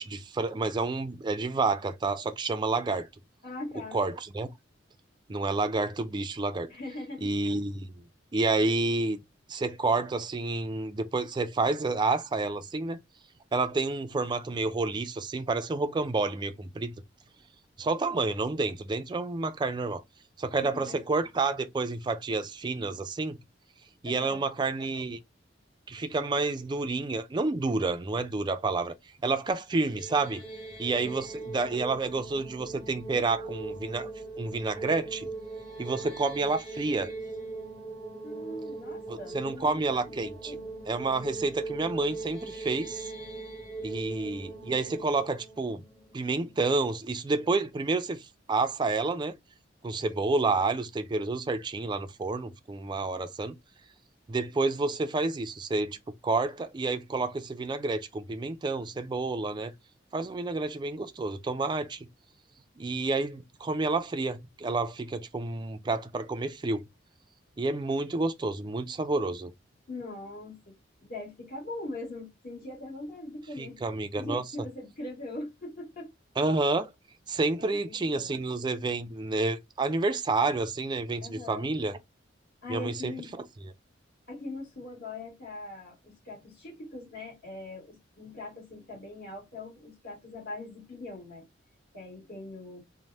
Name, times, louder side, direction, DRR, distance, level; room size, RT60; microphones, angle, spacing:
voice 1, 0.0-3.1 3.9-4.5 5.3-6.7 7.2-7.9 8.3-9.2 9.5-13.0 13.5-16.9 17.8-20.0 20.4-23.4 24.0-25.2 25.9-28.9 29.2-30.4 30.8-34.1 34.4-35.3 35.8-37.1 39.1-40.6 40.9-43.1 43.8-45.8 46.1-49.3 49.8-53.5 54.3-56.0 56.2-59.7 60.1-62.1 62.8-66.8 67.6-69.5 73.6-74.4 76.4-76.9 77.3-82.0 82.7-83.1, right 3 dB, 25° right, 0.3 m, -29 dB
voice 2, 3.4-4.0 6.7-7.3 20.6-21.0 24.0-24.4 30.9-31.2 38.2-39.8 40.2-40.7 69.9-70.7 71.0-73.8 74.2-76.1 77.6-78.4 81.2-81.7 82.6-83.3 84.3-91.4 91.9-92.8, left 2 dB, 55° left, 1.7 m, -41 dB
sound 1, 29.7-46.8, right 3 dB, 35° left, 1.7 m, -40 dB
3.2 x 2.1 x 2.6 m
head